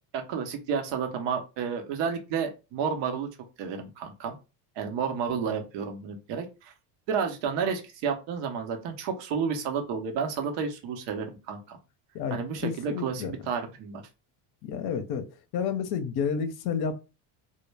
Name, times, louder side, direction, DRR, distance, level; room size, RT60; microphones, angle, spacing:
voice 1, 0.1-3.3 3.6-4.3 4.8-6.7 7.1-11.8 12.3-14.0, right 6 dB, 60° right, 0.8 m, -31 dB
voice 2, 12.6-13.4 14.6-15.3 15.5-17.0, left 6 dB, 50° left, 0.7 m, -30 dB
2.2 x 2.1 x 3.2 m
hypercardioid pair, 75°, 48 cm